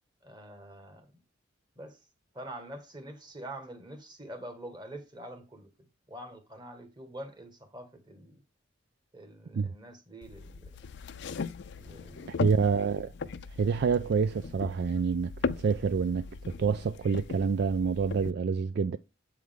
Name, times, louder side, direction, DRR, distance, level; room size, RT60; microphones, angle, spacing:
voice 1, 0.2-1.1 1.7-2.0 2.3-8.4 9.1-10.7 11.7-12.4, right 1 dB, 20° right, 1.5 m, -45 dB
sound 1, 10.2-18.3, left 4 dB, 60° left, 0.5 m, -38 dB
voice 2, 12.4-13.1 13.6-15.3 15.6-19.0, right 5 dB, 55° right, 0.3 m, -27 dB
8.0 x 4.8 x 3.7 m
head